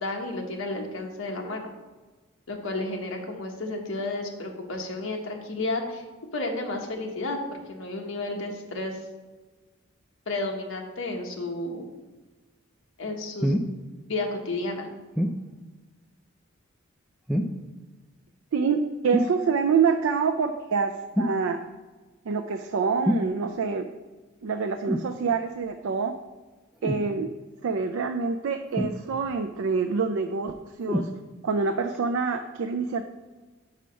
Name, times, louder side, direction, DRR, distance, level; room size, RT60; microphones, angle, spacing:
voice 1, 0.0-1.7 2.5-6.0 6.3-7.4 7.7-9.0 10.3-11.8 13.0-13.6 14.1-14.9, left 2 dB, 75° left, 1 dB, 1.0 m, -32 dB
sound 1, 13.4-13.7 15.2-15.4 17.3-17.7 19.1-19.4 21.1-21.4 23.0-23.3 24.9-25.1 26.8-27.1 28.8-29.3 30.9-31.1 31.9-32.0, equal, ahead, 0.3 m, -26 dB
voice 2, 18.5-21.6 22.3-23.9 24.4-26.1 26.8-27.3 27.6-31.1 31.4-33.0, right 5 dB, 80° right, 6 dB, 0.4 m, -26 dB
5.6 x 4.8 x 5.1 m, 1.3 s
head